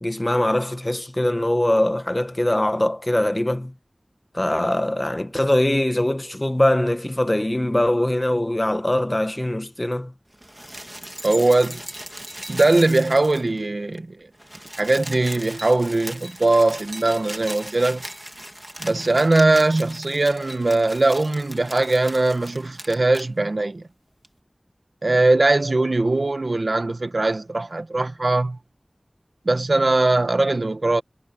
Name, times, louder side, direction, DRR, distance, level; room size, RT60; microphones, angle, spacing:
voice 1, 0.0-3.7 4.3-10.1, left 1 dB, 30° left, 1.4 m, -22 dB
sound 1, 10.3-13.7 13.9-14.0 14.3-23.3 24.2-24.3, right 1 dB, 15° right, 2.2 m, -38 dB
voice 2, 11.2-11.8 12.5-14.2 14.8-18.0 18.8-23.8 25.0-28.6 29.4-31.0, right 2 dB, 70° right, 1.6 m, -20 dB
wide cardioid pair, 45°, 0 cm